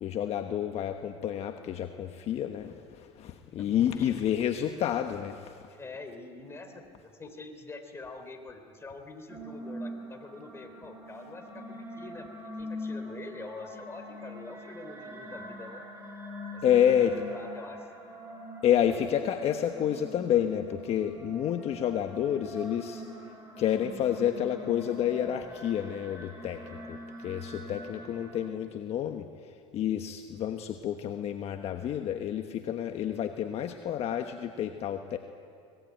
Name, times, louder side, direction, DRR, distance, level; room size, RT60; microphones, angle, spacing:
voice 1, 0.0-5.6 16.6-17.1 18.6-23.0 23.6-29.3 29.7-35.2, left 10 dB, 45° left, 6 dB, 1.2 m, -29 dB
voice 2, 3.7-4.2 5.7-15.8 16.5-17.9 26.6-26.9, left 3 dB, 20° left, 4 dB, 3.3 m, -45 dB
sound 1, 9.3-28.4, equal, 20° right, 6.0 m, -43 dB
24.0 x 20.0 x 9.2 m, 2.3 s
supercardioid pair, 115°, 14 cm